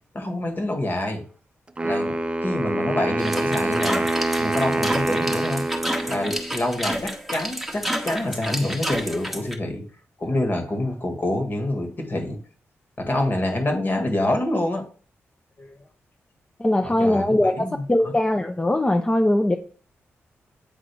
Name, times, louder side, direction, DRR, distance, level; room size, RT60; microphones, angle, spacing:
voice 1, 0.1-1.2 1.8-4.1 4.4-5.7 6.1-9.8 10.2-12.4 13.0-14.8 15.6-15.8 16.8-18.1, left 1 dB, 40° left, 4 dB, 1.8 m, -26 dB
Wind instrument woodwind instrument, 1.8-6.8, right 2 dB, 20° right, 0.6 m, -25 dB
sound 1, 3.2-9.5, equal, ahead, 1.2 m, -30 dB
voice 2, 16.6-19.6, left 1 dB, 20° left, 5 dB, 0.6 m, -21 dB
8.5 x 3.7 x 3.5 m, 0.41 s
cardioid pair, 70°, 5 cm